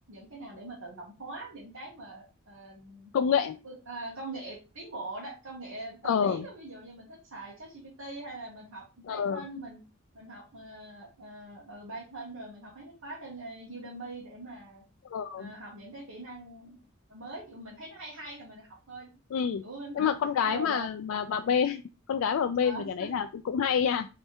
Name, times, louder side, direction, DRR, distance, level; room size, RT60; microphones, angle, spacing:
voice 1, 0.1-3.1 3.6-9.8 10.1-14.8 15.4-16.8 17.1-20.1 20.4-20.9 21.3-21.6 22.6-23.1, right 2 dB, 80° right, -4 dB, 1.4 m, -43 dB
voice 2, 3.1-3.6 6.0-6.4 9.1-9.4 15.1-15.5 19.3-19.6 20.0-21.8 22.1-24.1, left 7 dB, 75° left, 7 dB, 0.3 m, -27 dB
3.4 x 3.2 x 4.5 m, 0.31 s
head